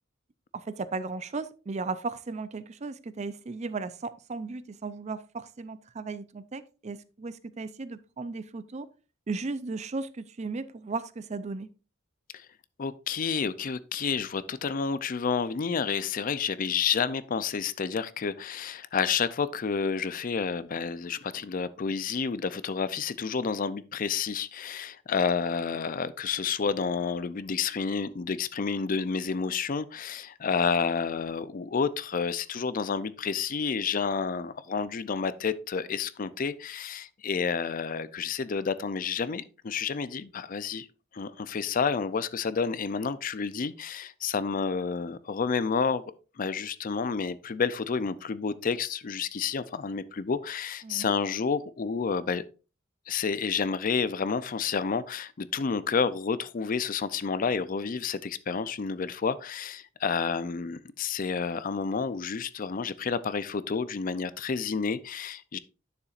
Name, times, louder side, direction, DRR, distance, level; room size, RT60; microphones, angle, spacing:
voice 1, 0.5-8.9 9.3-11.7 50.8-51.1, right 3 dB, 35° right, 0.5 m, -36 dB
voice 2, 12.8-40.9 41.1-52.4 53.1-65.6, left 5 dB, 45° left, 0.4 m, -30 dB
9.8 x 6.9 x 2.5 m
head